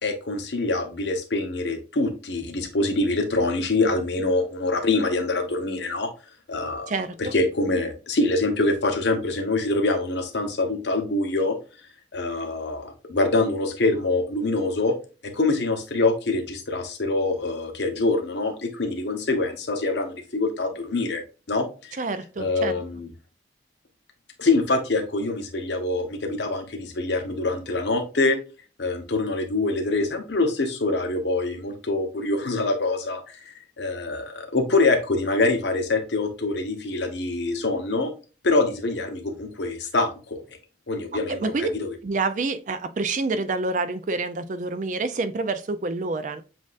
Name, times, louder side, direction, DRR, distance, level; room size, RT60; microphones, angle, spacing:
voice 1, 0.0-6.1 6.5-6.9 7.2-11.6 12.1-14.9 15.2-21.2 21.5-22.0 22.4-23.1 24.4-28.4 28.8-38.1 38.4-40.4 40.9-41.9, left 2 dB, 70° left, 0.9 m, -25 dB
voice 2, 6.9-7.3 22.0-22.7 41.1-41.7 42.0-46.4, right 3 dB, 45° right, 0.4 m, -27 dB
7.3 x 2.5 x 2.4 m
head